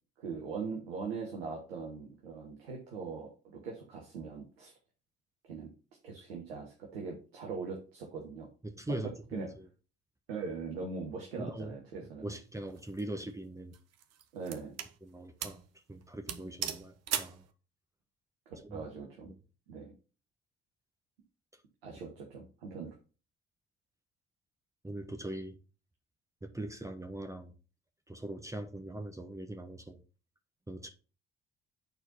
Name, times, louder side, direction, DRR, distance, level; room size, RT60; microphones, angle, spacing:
voice 1, 0.2-4.7 5.4-5.7 6.0-8.5 8.9-9.0 9.3-9.5 10.3-12.4 14.3-14.7 18.5-19.3 19.7-19.9 21.8-22.9, right 5 dB, 80° right, 1.3 m, -41 dB
voice 2, 8.6-9.7 11.4-11.8 12.2-13.7 15.0-15.6 15.9-17.4 18.6-18.8 24.8-25.6 26.4-27.5 28.1-30.0 30.7-30.9, right 1 dB, 10° right, 1.2 m, -41 dB
sound 1, 12.7-13.0 13.7-15.0 15.4-15.7 15.9-16.0 16.3-17.4, right 9 dB, 55° right, 0.9 m, -37 dB
8.6 x 4.4 x 4.2 m
figure-of-eight pair, 45°, 31 cm